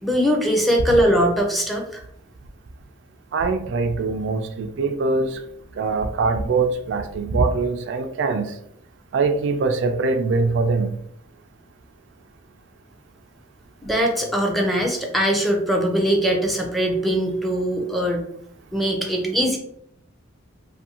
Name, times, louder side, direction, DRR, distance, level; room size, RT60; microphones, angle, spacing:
voice 1, 0.0-2.0 13.8-18.3 18.7-19.6, equal, ahead, 0 dB, 0.4 m, -21 dB
voice 2, 3.3-5.4 5.8-8.6 9.1-11.0, right 3 dB, 70° right, 7 dB, 0.3 m, -22 dB
2.6 x 2.5 x 2.8 m, 0.71 s
head